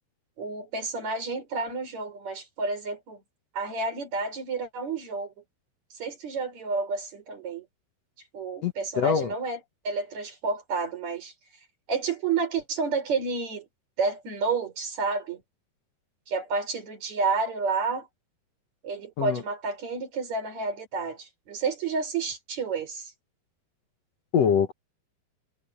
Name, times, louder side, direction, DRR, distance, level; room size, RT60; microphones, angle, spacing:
voice 1, 0.4-3.2 3.5-5.3 6.0-7.7 8.3-9.6 9.8-11.3 11.9-13.7 14.0-15.4 16.3-18.1 18.8-23.1, right 4 dB, 40° right, 6.0 m, -30 dB
voice 2, 8.6-9.3 19.2-19.4 24.3-24.7, left 7 dB, 75° left, 1.5 m, -24 dB
omnidirectional pair, 5.0 m